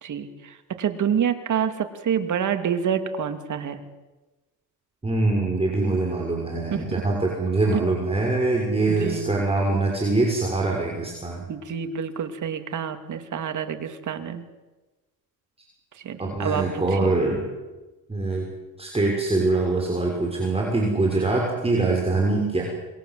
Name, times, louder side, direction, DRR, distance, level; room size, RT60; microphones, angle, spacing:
voice 1, 0.0-3.8 6.7-7.0 7.7-7.8 8.9-9.3 11.5-14.4 15.9-17.1 21.1-21.3, right 8 dB, 45° right, 8 dB, 2.9 m, -28 dB
voice 2, 5.0-11.5 16.2-17.4 18.1-18.5 18.8-22.6, right 2 dB, 15° right, -1 dB, 6.5 m, -23 dB
27.0 x 22.0 x 7.8 m, 1.2 s
cardioid pair, 105°, 41 cm